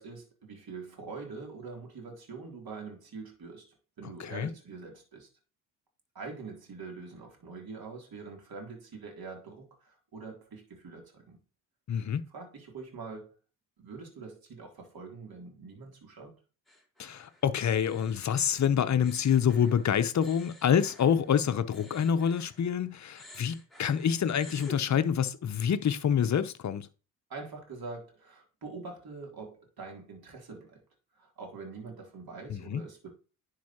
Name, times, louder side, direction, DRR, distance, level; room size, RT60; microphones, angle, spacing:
voice 1, 0.0-5.3 6.1-11.4 12.3-13.4 13.8-16.4 27.3-30.8 31.1-33.1, right 4 dB, 45° right, 3.3 m, -44 dB
voice 2, 4.2-4.5 11.9-12.2 17.0-26.9 32.5-32.8, left 8 dB, 35° left, 0.8 m, -27 dB
sound 1, 16.7-22.8 23.1-24.8, left 1 dB, ahead, 3.1 m, -52 dB
10.5 x 4.8 x 2.9 m
hypercardioid pair, 50°, 50 cm